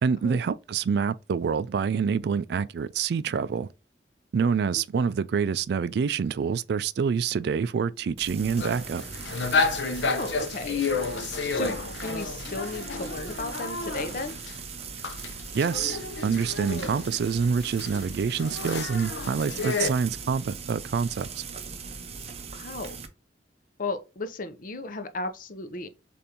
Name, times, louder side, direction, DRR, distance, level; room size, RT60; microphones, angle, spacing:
voice 1, 0.0-3.7 4.3-9.0 15.5-21.4, right 6 dB, 65° right, 0.3 m, -26 dB
Frying (food), 8.2-23.1, right 5 dB, 35° right, 0.7 m, -40 dB
sound 1, 8.6-14.5 15.0-19.9, left 4 dB, 85° left, 0.7 m, -31 dB
voice 2, 10.0-10.8 11.5-14.4 22.5-23.0 23.8-25.9, left 2 dB, 50° left, 0.7 m, -35 dB
6.8 x 2.6 x 2.9 m
head